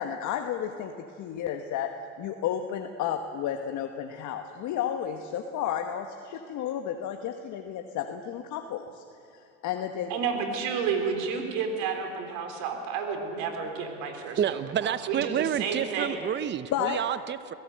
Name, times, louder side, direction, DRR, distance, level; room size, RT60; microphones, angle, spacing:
voice 1, 0.0-9.0 9.3-10.1 16.7-17.0, left 9 dB, 60° left, 5 dB, 1.4 m, -32 dB
voice 2, 10.1-14.8 15.1-16.2, right 6 dB, 70° right, 4 dB, 3.9 m, -31 dB
voice 3, 14.4-17.5, right 9 dB, 30° right, 14 dB, 0.8 m, -29 dB
23.0 x 17.0 x 7.9 m, 2.5 s
supercardioid pair, 85°, 34 cm